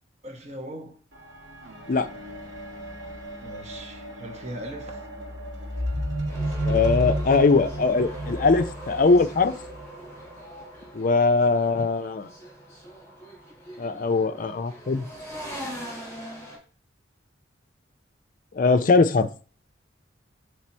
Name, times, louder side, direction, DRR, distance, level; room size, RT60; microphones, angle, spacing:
voice 1, 0.2-1.0 3.4-5.0, right 1 dB, 35° right, 1.2 m, -39 dB
sound 1, 1.1-10.6 11.4-11.5, equal, 70° right, 1.6 m, -33 dB
sound 2, 6.3-16.6, right 1 dB, 15° left, 2.8 m, -41 dB
voice 2, 6.6-9.5 10.9-12.3 13.8-15.1 18.5-19.3, left 4 dB, 45° left, 0.4 m, -21 dB
7.4 x 3.3 x 4.3 m
head